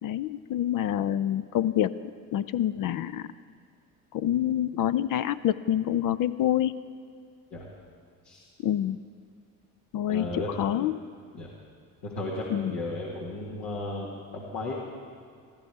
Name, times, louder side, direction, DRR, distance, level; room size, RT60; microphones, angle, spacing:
voice 1, 0.0-1.9 2.3-3.3 4.1-6.7 8.6-9.0 9.9-10.3 10.6-11.0 12.5-12.7, left 11 dB, 55° left, 13 dB, 0.5 m, -26 dB
voice 2, 10.1-10.7 11.3-11.5 12.0-14.7, left 2 dB, 80° left, -4 dB, 2.0 m, -35 dB
15.0 x 13.5 x 4.7 m, 2.2 s
hypercardioid pair, 60°, 40 cm